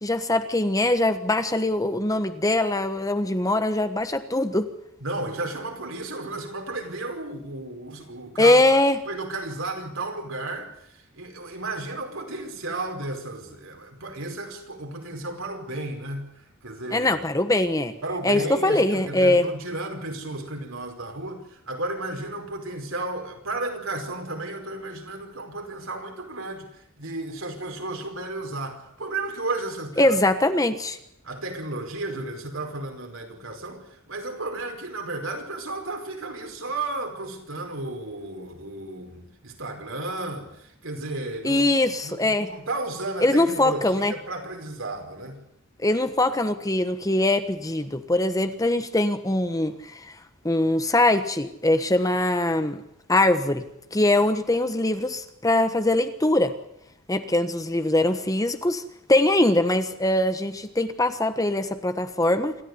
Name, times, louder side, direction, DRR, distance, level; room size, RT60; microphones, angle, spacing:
voice 1, 0.0-4.7 8.4-9.0 16.9-17.9 18.2-19.4 30.0-31.0 41.4-42.5 43.2-44.1 45.8-50.1 50.4-52.8 53.1-53.6 53.9-56.5 57.1-58.8 59.1-62.6, left 1 dB, 15° left, 9 dB, 1.3 m, -22 dB
voice 2, 5.0-8.8 9.0-17.1 18.0-30.2 31.2-41.7 42.0-45.4, right 2 dB, 70° right, 4 dB, 5.1 m, -33 dB
27.5 x 14.0 x 9.7 m, 0.77 s
head